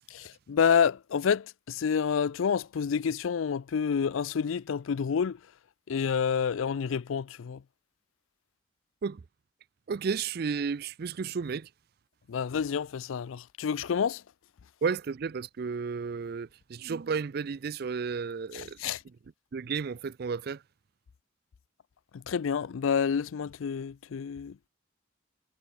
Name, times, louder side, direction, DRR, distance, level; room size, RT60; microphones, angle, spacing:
voice 1, 0.1-5.4 5.9-7.6 12.3-14.2 18.5-19.0 22.1-24.7, left 6 dB, 85° left, 0.4 m, -28 dB
voice 2, 9.9-11.7 14.8-18.8 19.5-20.6, right 5 dB, 50° right, 0.4 m, -32 dB
head